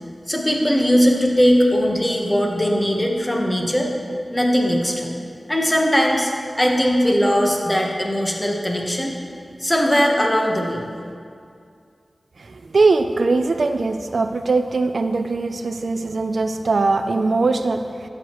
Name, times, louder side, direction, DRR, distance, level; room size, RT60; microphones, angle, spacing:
voice 1, 0.3-3.9 4.3-5.1 5.5-6.3 6.6-9.1 9.6-10.8, equal, 15° left, 0 dB, 1.2 m, -19 dB
voice 2, 12.7-17.8, right 3 dB, 70° right, 7 dB, 0.4 m, -20 dB
13.0 x 7.8 x 3.1 m, 2.3 s
wide cardioid pair, 85°, 0 cm